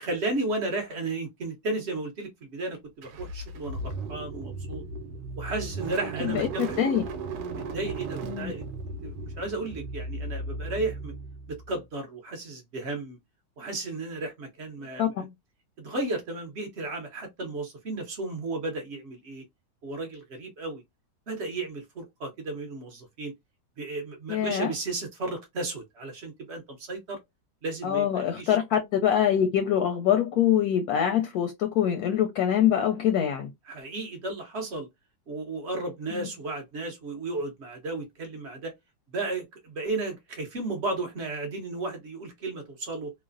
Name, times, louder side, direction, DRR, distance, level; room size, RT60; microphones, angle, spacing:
voice 1, 0.0-4.8 5.4-6.8 7.5-8.6 9.0-11.1 11.5-13.2 13.6-15.1 15.8-19.4 19.8-20.8 21.3-23.3 23.8-27.2 27.6-28.5 33.7-34.9 35.3-38.7 39.1-43.1, right 2 dB, 55° right, 0.8 m, -34 dB
Car / Engine starting, 3.0-11.8, right 3 dB, 80° right, 1.2 m, -36 dB
voice 2, 6.2-7.0 8.2-8.5 15.0-15.3 24.3-24.7 27.8-33.5 36.1-36.3, left 10 dB, 70° left, 0.9 m, -24 dB
3.1 x 2.0 x 2.4 m
omnidirectional pair, 1.9 m